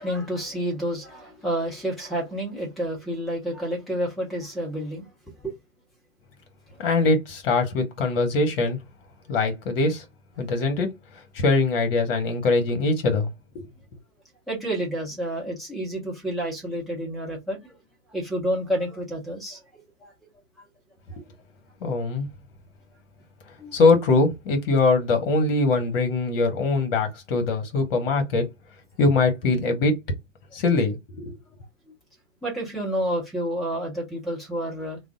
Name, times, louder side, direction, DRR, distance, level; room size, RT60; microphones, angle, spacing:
voice 1, 0.0-5.1 5.4-5.5 14.5-17.8 18.1-20.1 23.6-23.7 32.4-35.0, right 1 dB, ahead, 0.3 m, -29 dB
voice 2, 6.8-8.8 9.3-10.0 10.4-10.9 11.3-13.3 13.5-13.7 21.8-22.3 23.7-28.5 29.0-30.0 30.5-31.3, left 3 dB, 45° left, 1.2 m, -22 dB
3.3 x 2.1 x 2.6 m
figure-of-eight pair, 115°, 40 cm